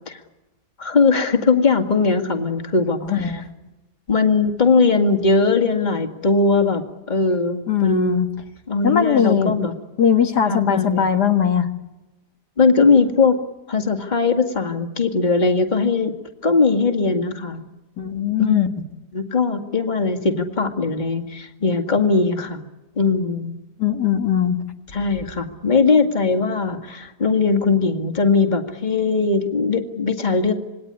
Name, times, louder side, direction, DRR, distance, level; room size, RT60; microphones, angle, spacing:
voice 1, 0.8-3.4 4.1-6.8 7.1-8.3 8.7-9.7 10.4-11.0 12.6-13.4 13.7-16.2 16.4-17.6 18.4-18.7 19.1-22.6 23.0-23.5 24.9-30.5, left 4 dB, 25° left, 5 dB, 2.1 m, -19 dB
voice 2, 3.0-3.4 7.7-8.3 8.8-9.5 10.0-11.7 18.0-18.7 23.8-24.6, left 8 dB, 80° left, 5 dB, 2.3 m, -19 dB
27.0 x 20.5 x 9.8 m, 1.1 s
omnidirectional pair, 1.7 m